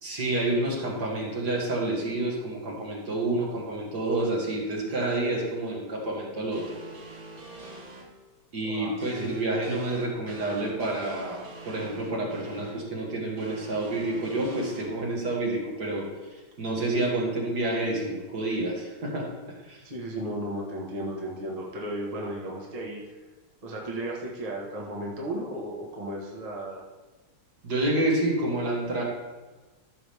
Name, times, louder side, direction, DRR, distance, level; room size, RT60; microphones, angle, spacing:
voice 1, 0.0-6.8 8.5-19.8 27.6-29.0, right 2 dB, 50° right, -2 dB, 2.1 m, -29 dB
sound 1, 6.5-8.0 9.0-12.7 13.4-14.9, right 2 dB, 80° right, 2.6 m, -44 dB
voice 2, 8.6-9.3 19.8-23.2 23.6-26.8, right 1 dB, 20° right, -3 dB, 1.2 m, -35 dB
13.5 x 6.0 x 3.5 m, 1.2 s
omnidirectional pair, 2.4 m